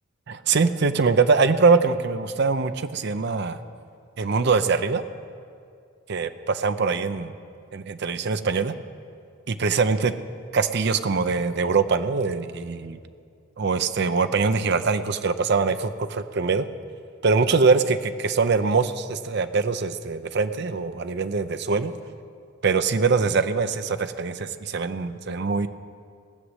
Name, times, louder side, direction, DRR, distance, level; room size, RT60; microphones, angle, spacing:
voice 1, 0.3-3.6 4.2-5.0 6.1-7.3 7.7-8.7 9.5-10.2 10.5-13.0 13.6-16.7 17.2-21.9 22.6-25.7, right 4 dB, 55° right, 11 dB, 0.6 m, -23 dB
18.0 x 6.3 x 8.0 m, 2.3 s
head